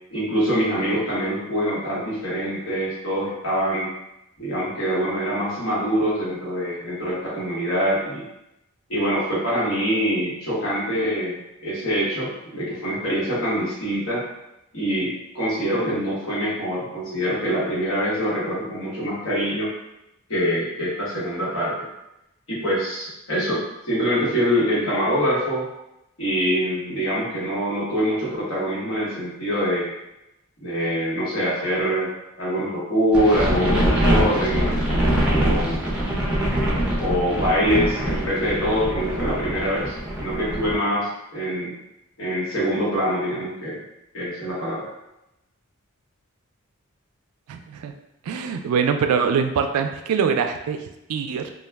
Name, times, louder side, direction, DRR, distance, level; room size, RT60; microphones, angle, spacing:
voice 1, 0.1-3.9 4.4-8.2 8.9-14.2 14.7-19.7 20.3-21.8 22.5-25.7 26.2-29.9 30.6-32.1 32.4-34.8 35.3-35.9 37.0-41.7 42.2-43.8 44.1-44.9, equal, 70° left, -7 dB, 1.2 m, -24 dB
sound 1, 33.1-40.7, right 1 dB, 5° right, 0.5 m, -23 dB
voice 2, 47.5-47.9 48.2-51.5, right 6 dB, 85° right, 9 dB, 0.3 m, -23 dB
2.3 x 2.2 x 3.3 m, 0.89 s
head